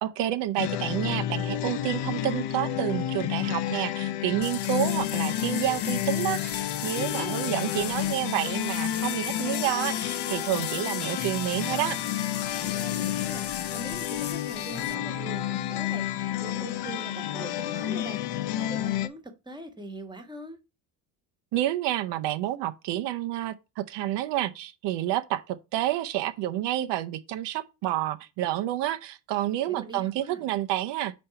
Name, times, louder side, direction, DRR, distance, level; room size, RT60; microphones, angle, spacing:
voice 1, 0.0-12.0 21.5-31.1, right 13 dB, 85° right, 0.8 m, -29 dB
sound 1, 0.6-19.1, left 12 dB, 70° left, 0.7 m, -30 dB
sound 2, 4.4-15.0, left 10 dB, 35° left, 0.5 m, -37 dB
voice 2, 7.0-7.5 12.6-13.5 13.7-16.1 16.4-18.2 18.5-20.6 29.7-30.4, right 1 dB, 10° right, 1.2 m, -42 dB
5.3 x 4.3 x 5.7 m
cardioid pair, 140°, 41 cm